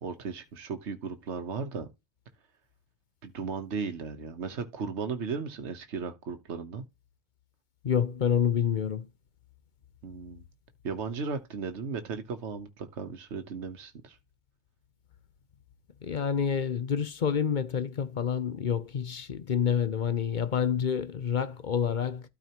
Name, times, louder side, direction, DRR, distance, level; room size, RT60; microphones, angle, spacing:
voice 1, 0.0-1.9 3.2-6.8 10.0-10.4 10.8-14.2, right 5 dB, 80° right, 1.4 m, -36 dB
voice 2, 7.8-9.0 16.0-22.2, left 7 dB, 50° left, 0.8 m, -28 dB
12.5 x 4.7 x 2.9 m
omnidirectional pair, 1.2 m